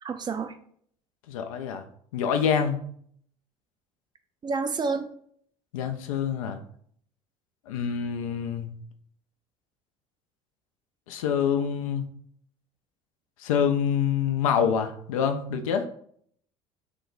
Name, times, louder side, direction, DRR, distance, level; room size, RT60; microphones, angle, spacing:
voice 1, 0.0-0.6 4.4-5.1, right 4 dB, 25° right, 8 dB, 0.4 m, -29 dB
voice 2, 1.3-1.8 2.1-2.8 5.7-6.6 7.7-8.8 11.1-12.1 13.4-15.9, left 7 dB, 75° left, 7 dB, 0.4 m, -26 dB
2.9 x 2.1 x 3.8 m, 0.62 s
hypercardioid pair, 65°, 18 cm